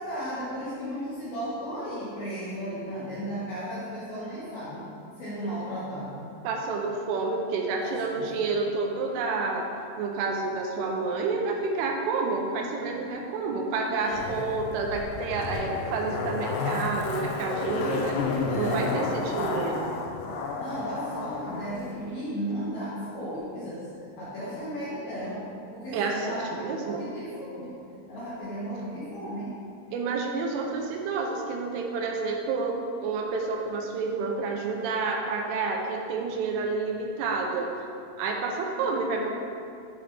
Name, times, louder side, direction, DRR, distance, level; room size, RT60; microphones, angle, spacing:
voice 1, 0.0-4.9 5.2-6.3 7.8-8.4 14.0-14.2 18.5-19.0 20.6-27.8 28.1-29.6, equal, 70° left, -10 dB, 2.4 m, -35 dB
voice 2, 6.4-9.7 10.0-18.2 18.6-19.9 25.9-27.0 29.9-37.7 38.2-39.3, right 4 dB, 85° right, 1 dB, 3.0 m, -29 dB
Zipper (clothing), 14.1-21.8 22.0-22.1, left 4 dB, 90° left, 3.2 m, -31 dB
9.4 x 4.0 x 3.3 m, 2.4 s
omnidirectional pair, 5.8 m